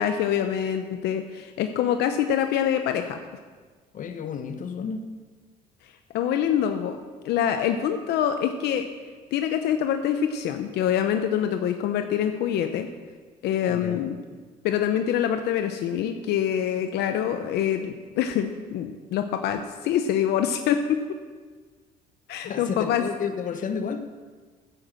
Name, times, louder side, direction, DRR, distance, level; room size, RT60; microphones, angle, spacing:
voice 1, 0.0-3.2 6.1-7.0 7.2-8.9 9.3-12.9 13.4-14.2 14.6-21.0 22.3-23.0, left 9 dB, 80° left, 7 dB, 0.7 m, -25 dB
voice 2, 3.9-5.0 13.7-14.1 22.4-24.0, left 6 dB, 50° left, 8 dB, 1.1 m, -31 dB
9.9 x 8.1 x 7.6 m, 1.5 s
cardioid pair, 110°, 17 cm